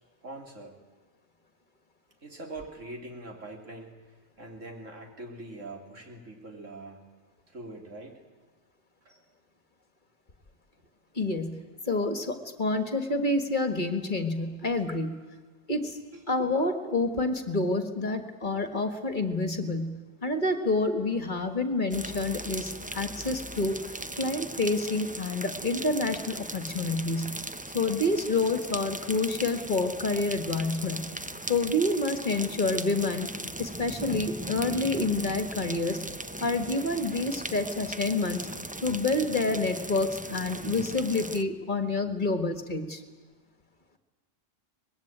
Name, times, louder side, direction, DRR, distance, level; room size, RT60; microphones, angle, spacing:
voice 1, 0.2-0.7 2.2-3.9 4.4-7.0 7.5-8.2 9.0-9.2 16.1-16.5 18.5-18.6, right 2 dB, 85° right, 2 dB, 3.7 m, -43 dB
voice 2, 11.2-11.6 11.9-15.2 15.7-16.0 16.3-23.8 24.2-27.4 27.7-31.0 31.5-33.3 33.6-36.1 36.4-38.5 38.8-43.0, left 2 dB, 40° left, 7 dB, 1.9 m, -28 dB
sound 1, 21.9-41.4, right 1 dB, 10° right, 0.4 m, -38 dB
24.0 x 20.5 x 9.0 m, 1.3 s
omnidirectional pair, 1.3 m